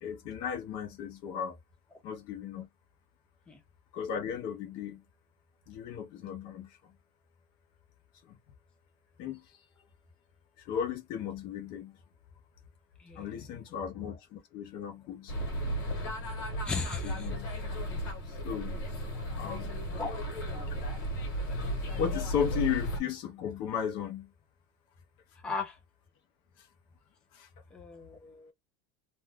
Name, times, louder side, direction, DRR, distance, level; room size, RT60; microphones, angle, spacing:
voice 1, 0.0-1.6 2.0-2.7 3.9-5.0 5.7-6.9 8.2-8.4 9.2-9.6 10.6-12.0 13.1-15.3 17.0-17.5 18.3-18.8 19.3-19.8 21.6-21.7 22.0-24.3 26.6-26.7 27.3-27.5, left 8 dB, 45° left, 0.7 m, -35 dB
voice 2, 13.0-13.3 16.6-17.3 20.0-20.1 25.4-25.8 27.7-28.5, left 4 dB, 10° left, 0.4 m, -36 dB
sound 1, 15.3-23.0, equal, 70° left, 1.3 m, -34 dB
2.6 x 2.3 x 3.4 m
supercardioid pair, 165°, 12 cm